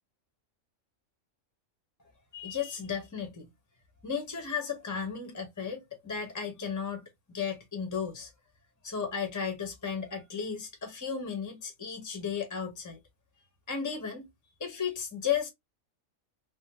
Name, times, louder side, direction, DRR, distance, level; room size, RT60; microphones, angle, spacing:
voice 1, 2.3-3.5 4.0-8.3 8.8-13.0 13.7-14.3 14.6-15.5, left 7 dB, 25° left, 0.4 m, -34 dB
3.3 x 2.1 x 2.7 m
omnidirectional pair, 1.5 m